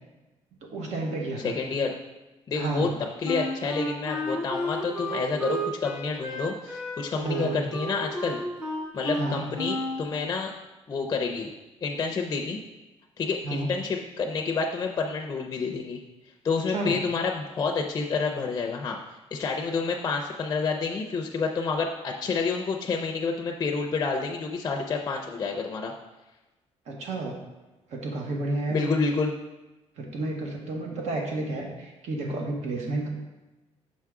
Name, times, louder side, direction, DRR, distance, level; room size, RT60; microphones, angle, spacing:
voice 1, 0.7-1.6 2.5-2.9 7.2-7.6 9.2-9.5 13.4-13.7 16.7-17.0 26.9-27.4 27.9-28.9 30.0-33.1, right 2 dB, 80° right, 0 dB, 1.3 m, -31 dB
voice 2, 1.4-1.9 2.5-2.9 3.2-8.4 8.9-10.5 10.9-11.5 11.8-12.6 13.2-16.0 16.4-19.0 19.3-25.9 28.7-29.3, left 4 dB, 30° left, 2 dB, 0.4 m, -28 dB
Wind instrument woodwind instrument, 3.2-10.1, right 1 dB, 5° right, 0.7 m, -32 dB
6.2 x 4.6 x 3.6 m, 1.1 s
cardioid pair, 175°, 11 cm